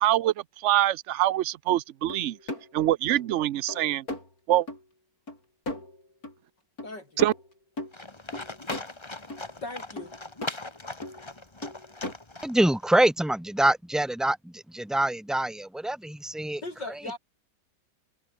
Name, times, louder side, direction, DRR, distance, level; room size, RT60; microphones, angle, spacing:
voice 1, 0.0-0.3 0.6-2.4 2.7-4.0 4.5-4.7 7.2-7.3, right 13 dB, 85° right, 0.6 m, -24 dB
sound 1, 2.1-2.7 3.1-3.4 3.7-4.3 4.7-4.8 5.3-5.4 5.7-6.3 6.8-6.9 7.2-7.9 8.3-8.9 9.3-9.5 10.0-10.5 11.0-11.3 11.6-12.1, left 2 dB, 55° left, 8.1 m, -37 dB
voice 2, 6.8-7.2 9.6-10.1 16.6-17.2, left 2 dB, 75° left, 8.1 m, -38 dB
Livestock farm animals working animals, 7.9-12.9, left 2 dB, 15° left, 1.7 m, -39 dB
voice 3, 12.4-16.6, right 1 dB, ahead, 0.4 m, -25 dB
omnidirectional pair, 1.9 m